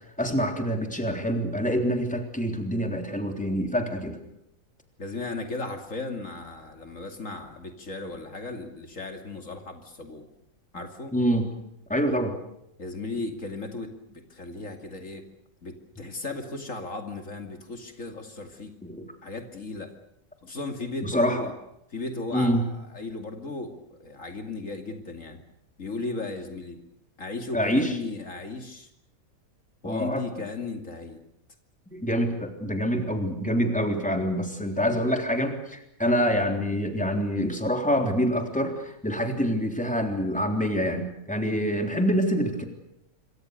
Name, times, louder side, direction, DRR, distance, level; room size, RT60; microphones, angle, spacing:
voice 1, 0.2-4.2 11.1-11.5 11.9-12.4 18.8-19.0 21.0-21.5 22.3-22.7 27.5-28.0 29.8-30.2 31.9-42.7, equal, 5° left, 4 dB, 3.5 m, -26 dB
voice 2, 5.0-10.3 10.7-11.1 12.8-15.3 15.6-18.7 19.2-19.9 20.4-21.5 21.9-25.4 25.8-26.8 27.2-28.9 29.8-31.2, left 3 dB, 65° left, 5 dB, 2.9 m, -36 dB
26.5 x 24.5 x 6.7 m, 0.78 s
omnidirectional pair, 1.5 m